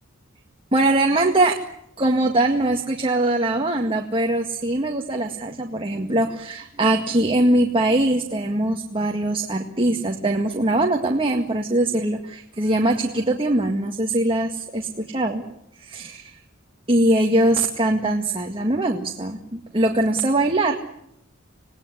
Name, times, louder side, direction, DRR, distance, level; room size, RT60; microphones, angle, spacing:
voice 1, 0.7-1.6 2.0-15.4 15.8-16.4 16.9-20.7, right 1 dB, 25° right, 2 dB, 1.9 m, -22 dB
27.5 x 19.0 x 9.9 m, 0.79 s
head